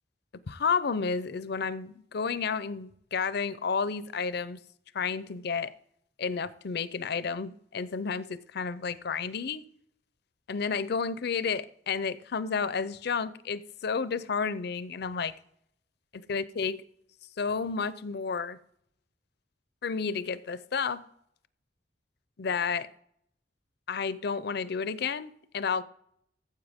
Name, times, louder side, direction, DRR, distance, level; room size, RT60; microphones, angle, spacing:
voice 1, 0.5-4.6 4.9-5.7 6.2-9.6 10.5-15.3 16.3-16.8 17.4-18.6 19.8-21.0 22.4-22.9 23.9-25.8, left 5 dB, 60° left, 0.6 m, -31 dB
14.5 x 7.7 x 3.5 m
head